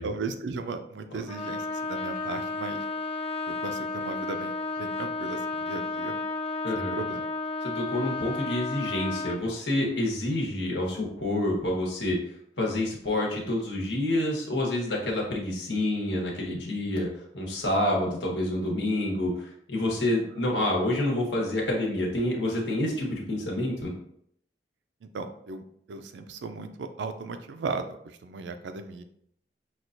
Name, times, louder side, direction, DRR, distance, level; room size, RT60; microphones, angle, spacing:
voice 1, 0.0-2.9 3.5-6.2 6.8-7.3 25.1-25.6 25.9-29.0, right 4 dB, 80° right, 9 dB, 0.4 m, -36 dB
Trumpet, 1.3-9.4, left 3 dB, 35° left, 0.4 m, -32 dB
voice 2, 6.6-7.0 7.6-12.2 12.6-17.1 17.3-23.9, left 1 dB, 85° left, -2 dB, 1.2 m, -28 dB
5.9 x 2.3 x 2.5 m, 0.70 s
head